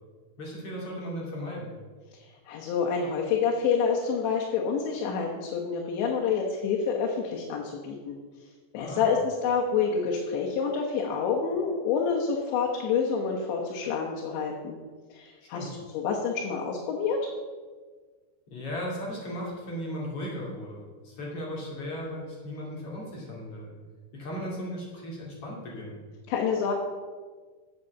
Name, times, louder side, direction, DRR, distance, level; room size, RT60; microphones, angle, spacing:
voice 1, 0.4-1.7 8.8-9.1 15.5-15.7 18.5-23.7 24.1-26.0, equal, 40° left, -4 dB, 2.8 m, -36 dB
voice 2, 2.1-8.2 8.7-14.8 15.1-17.3 26.3-26.7, left 6 dB, 85° left, -1 dB, 3.4 m, -28 dB
8.6 x 8.1 x 6.9 m, 1.5 s
omnidirectional pair, 5.0 m